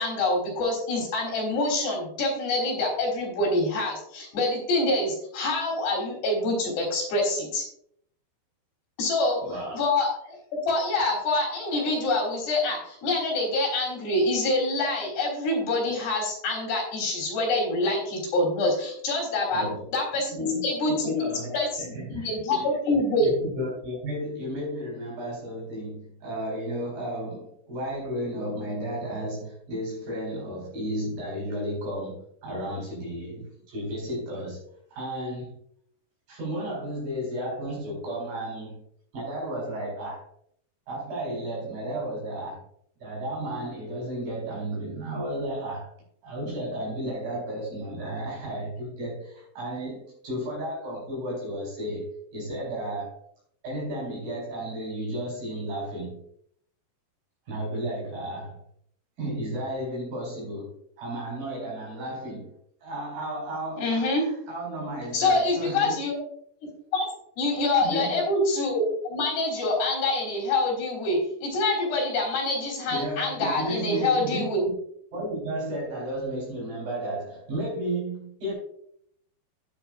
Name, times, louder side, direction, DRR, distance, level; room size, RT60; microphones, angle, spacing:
voice 1, 0.0-7.6 9.0-9.4 9.7-19.7 19.9-21.1 21.5-23.3 63.8-64.3 65.1-66.2 66.9-67.1 67.4-68.8 69.1-74.6, left 2 dB, 75° left, -2 dB, 6.2 m, -26 dB
voice 2, 9.4-9.8 19.5-19.9 20.3-20.7 21.0-22.7 23.2-34.6 34.9-35.5 36.3-38.8 39.1-40.3 40.9-42.6 43.0-45.9 46.2-53.2 53.6-56.2 57.5-58.6 59.2-62.5 62.8-66.0 67.8-68.2 72.9-74.6 75.1-78.5, equal, 55° right, -5 dB, 6.1 m, -33 dB
12.5 x 10.0 x 2.5 m, 0.69 s
omnidirectional pair, 4.7 m